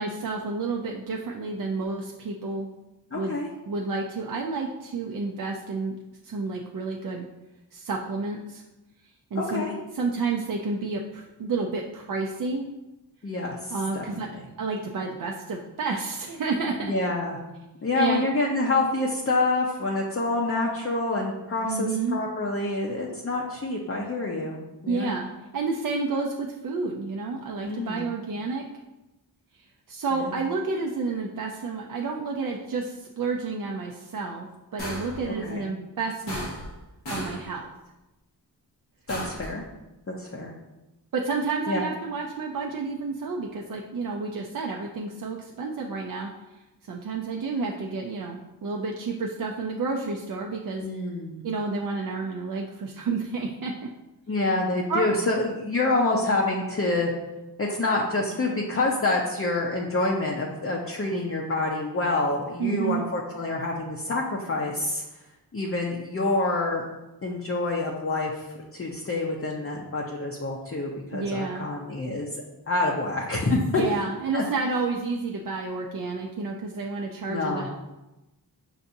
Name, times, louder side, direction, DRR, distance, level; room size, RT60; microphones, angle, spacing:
voice 1, 0.0-2.7 3.1-3.4 3.7-5.9 6.2-7.3 7.7-8.6 9.3-9.6 9.9-12.7 13.7-14.3 14.6-16.9 17.9-18.3 21.6-22.2 24.9-25.3 25.5-28.6 29.9-34.5 34.7-36.5 37.1-37.7 41.1-46.3 46.8-50.9 51.4-53.9 54.9-55.1 62.6-63.0 71.1-71.7 73.8-77.7, right 4 dB, 50° right, 0 dB, 0.5 m, -30 dB
voice 2, 3.1-3.5 9.3-9.7 13.2-14.5 16.8-17.4 17.8-24.6 24.8-25.1 27.6-28.1 30.1-30.4 35.4-35.6 39.1-39.6 40.2-40.5 41.7-41.8 50.8-51.4 54.3-57.1 57.6-65.0 65.5-66.8 67.2-68.4 68.7-72.3 72.7-73.8 74.3-74.4 77.3-77.7, left 2 dB, 30° left, -3 dB, 0.6 m, -27 dB
sound 1, 34.8-35.2 36.3-36.8 37.1-37.5 39.1-39.5, equal, 90° left, 1.4 m, -34 dB
5.6 x 2.6 x 2.6 m, 1.0 s
cardioid pair, 40°, 42 cm